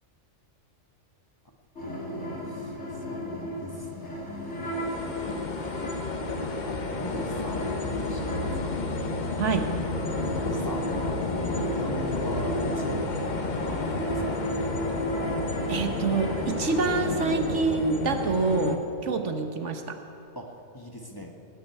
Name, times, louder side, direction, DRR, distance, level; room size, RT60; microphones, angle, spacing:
sound 1, 1.8-17.7, equal, 60° left, 3.9 m, -35 dB
voice 1, 1.8-4.3 6.6-8.8 10.3-14.4 19.1-19.2 20.3-21.3, equal, 15° left, 1 dB, 1.3 m, -40 dB
sound 2, 4.4-18.8, left 3 dB, 40° left, 1.0 m, -31 dB
voice 2, 9.4-9.7 15.7-20.0, right 4 dB, 65° right, 6 dB, 1.4 m, -27 dB
19.0 x 7.6 x 9.4 m, 2.7 s
omnidirectional pair, 1.3 m